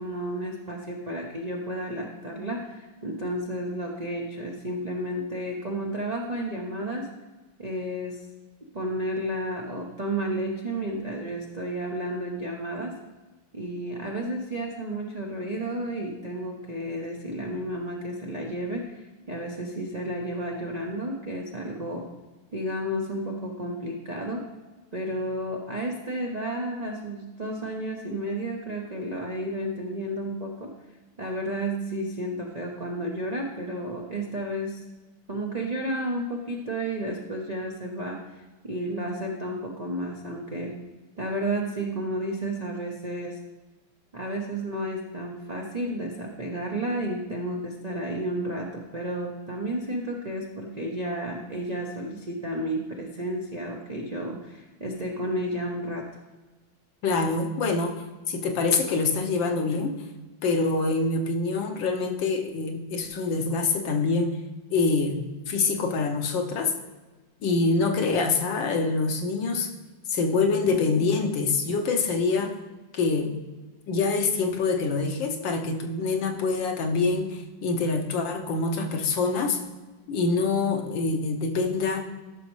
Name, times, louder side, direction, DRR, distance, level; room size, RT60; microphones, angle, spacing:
voice 1, 0.0-7.1 7.6-8.2 8.7-12.9 13.5-22.1 22.5-24.4 24.9-30.7 31.2-34.8 35.3-38.4 38.6-40.7 41.2-43.4 44.1-56.1, right 1 dB, 70° right, -2 dB, 0.3 m, -32 dB
voice 2, 57.0-57.9 58.3-59.9 60.4-64.4 64.7-66.7 67.4-69.7 70.1-72.6 72.9-73.4 73.9-79.6 80.1-82.0, left 4 dB, 70° left, 3 dB, 1.5 m, -25 dB
13.5 x 6.2 x 3.2 m, 1.2 s
omnidirectional pair, 2.3 m